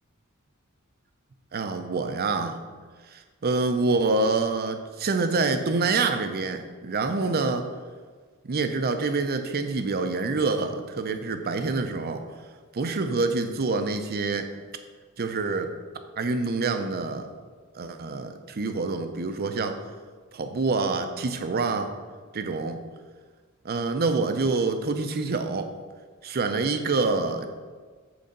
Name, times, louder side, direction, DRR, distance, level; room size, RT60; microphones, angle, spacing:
voice 1, 1.5-2.6 3.1-7.7 8.4-12.3 12.7-14.5 15.2-15.7 16.2-17.3 17.7-19.8 20.3-21.9 22.3-22.8 23.6-25.7 26.2-27.5, right 3 dB, 45° right, 7 dB, 0.6 m, -26 dB
7.7 x 4.0 x 5.3 m, 1.5 s
head